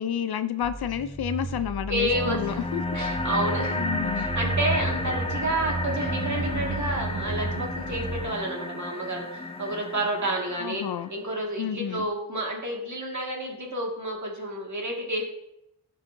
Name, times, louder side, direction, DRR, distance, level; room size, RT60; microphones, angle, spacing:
voice 1, 0.0-3.0 3.7-4.3 10.6-11.1 11.6-12.1, left 9 dB, 75° left, 12 dB, 0.5 m, -30 dB
sound 1, 0.6-8.3, right 3 dB, 25° right, 1.5 m, -33 dB
voice 2, 1.9-2.6 2.9-3.8 4.2-10.8 11.1-15.2, right 1 dB, 45° right, -1 dB, 1.9 m, -30 dB
sound 2, 2.1-11.1, left 2 dB, 15° left, 0.5 m, -32 dB
11.5 x 4.3 x 2.6 m, 0.81 s
cardioid pair, 55°, 38 cm